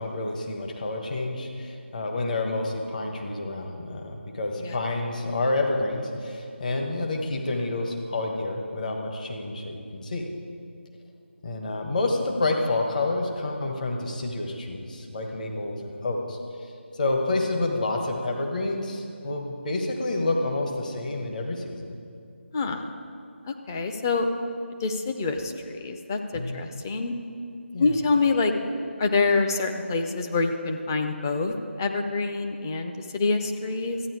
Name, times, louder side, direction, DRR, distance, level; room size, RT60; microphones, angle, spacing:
voice 1, 0.0-10.3 11.4-21.9 26.3-26.7 27.7-28.0, left 2 dB, 40° left, 2 dB, 1.2 m, -29 dB
voice 2, 22.5-22.9 23.5-24.3 24.8-27.1 27.8-28.5 29.0-34.0, left 3 dB, 15° left, 5 dB, 0.5 m, -26 dB
13.5 x 9.1 x 4.8 m, 2.4 s
figure-of-eight pair, 160°, 7 cm